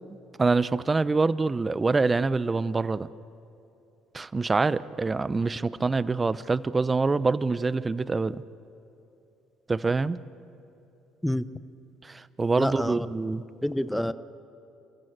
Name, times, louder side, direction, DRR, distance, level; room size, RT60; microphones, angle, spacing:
voice 1, 0.4-3.1 4.1-8.4 9.7-10.2 12.0-13.4, right 3 dB, 25° right, 17 dB, 0.8 m, -25 dB
voice 2, 12.6-13.1 13.6-14.1, left 1 dB, 5° left, 14 dB, 0.9 m, -27 dB
28.0 x 15.0 x 9.0 m, 2.9 s
hypercardioid pair, 60°, 0 cm